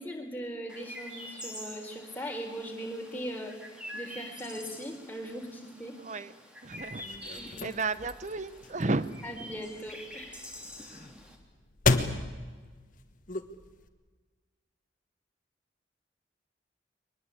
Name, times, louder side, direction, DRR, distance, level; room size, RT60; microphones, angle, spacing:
voice 1, 0.0-6.0 7.3-7.8 9.2-10.4, equal, 10° left, 2 dB, 3.8 m, -40 dB
Chirp tweet, 0.7-11.4, equal, 5° right, 3.0 m, -46 dB
voice 2, 6.6-9.1, right 3 dB, 40° right, 15 dB, 0.9 m, -33 dB
sound 1, 6.8-13.9, left 3 dB, 45° left, 1.5 m, -34 dB
23.0 x 20.0 x 8.6 m, 1.4 s
head